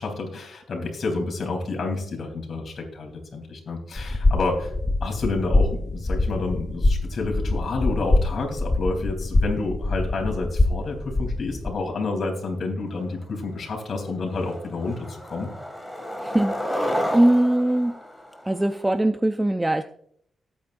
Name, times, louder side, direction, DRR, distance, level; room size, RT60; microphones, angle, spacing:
voice 1, 0.0-4.7 5.0-15.5, left 3 dB, 55° left, 2 dB, 3.4 m, -29 dB
sound 1, 4.0-11.7, left 2 dB, 20° left, 0.8 m, -24 dB
Skateboard, 13.2-13.3 13.7-14.0 14.3-19.0, equal, 5° left, 2.2 m, -31 dB
voice 2, 16.2-18.0 18.4-19.8, right 1 dB, 10° right, 9 dB, 0.5 m, -21 dB
18.5 x 8.7 x 2.6 m, 0.67 s
cardioid pair, 115°, 0 cm